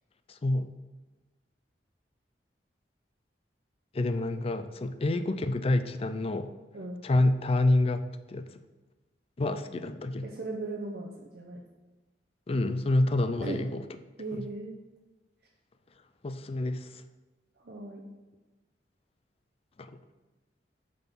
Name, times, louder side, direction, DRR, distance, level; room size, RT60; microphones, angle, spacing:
voice 1, 0.3-0.7 3.9-6.6 7.0-8.5 9.4-10.3 12.5-13.8 14.3-14.5 16.2-17.0 19.8-20.0, left 2 dB, 35° left, 10 dB, 0.4 m, -28 dB
voice 2, 10.2-11.1 11.3-11.6 13.4-13.6 14.2-14.7 17.6-18.0, right 2 dB, 60° right, -1 dB, 0.8 m, -37 dB
8.9 x 3.8 x 5.9 m, 1.2 s
head